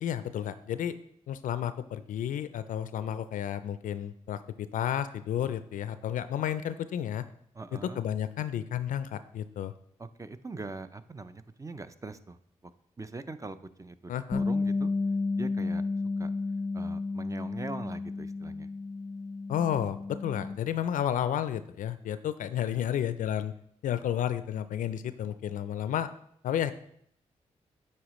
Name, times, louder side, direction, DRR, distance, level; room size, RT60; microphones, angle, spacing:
voice 1, 0.0-0.9 1.3-7.2 8.0-9.7 14.1-14.4 19.5-23.5 23.8-26.1 26.4-26.7, left 10 dB, 75° left, 13 dB, 0.4 m, -31 dB
voice 2, 7.5-8.0 10.0-12.4 13.0-14.9 15.4-15.8 16.2-16.3 16.7-18.7, right 3 dB, 25° right, 11 dB, 0.5 m, -42 dB
Bass guitar, 14.3-20.6, left 3 dB, 25° left, 0.6 m, -32 dB
8.5 x 4.2 x 3.1 m, 0.69 s
supercardioid pair, 40°, 14 cm